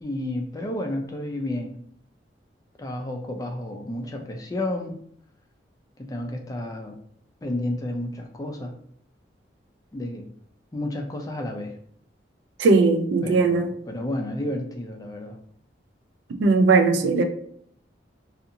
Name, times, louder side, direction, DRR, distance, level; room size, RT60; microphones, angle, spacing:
voice 1, 0.0-1.8 2.8-5.0 6.0-7.0 7.4-8.7 9.9-10.3 10.7-11.8 13.2-15.4, left 1 dB, 20° left, 0.3 m, -31 dB
voice 2, 12.6-13.7 16.4-17.2, right 3 dB, 80° right, 0.3 m, -18 dB
2.7 x 2.4 x 2.6 m
head